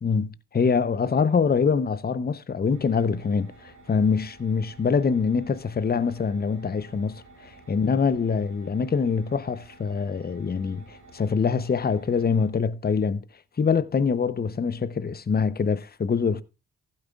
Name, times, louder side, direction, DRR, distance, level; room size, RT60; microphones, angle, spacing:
voice 1, 0.0-13.2 13.6-16.4, left 5 dB, 30° left, 0.7 m, -24 dB
sound 1, 2.7-12.5, right 3 dB, 60° right, 2.5 m, -51 dB
15.5 x 8.7 x 2.4 m
hypercardioid pair, 40°, 34 cm